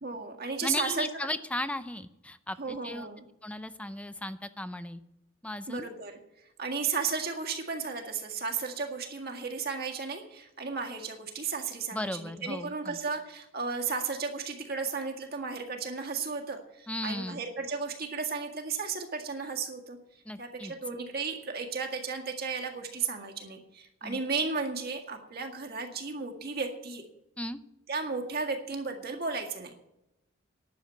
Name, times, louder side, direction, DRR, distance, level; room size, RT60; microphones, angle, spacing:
voice 1, 0.0-1.1 2.6-3.3 5.7-6.2 6.6-20.0 20.4-27.0 27.9-29.7, right 5 dB, 50° right, 3 dB, 1.9 m, -34 dB
voice 2, 0.6-3.1 3.4-5.0 5.4-5.9 11.9-13.0 16.9-17.4 20.3-20.7 24.0-24.2 27.4-27.6, left 1 dB, 5° left, 11 dB, 0.6 m, -36 dB
11.5 x 7.1 x 9.4 m, 0.87 s
head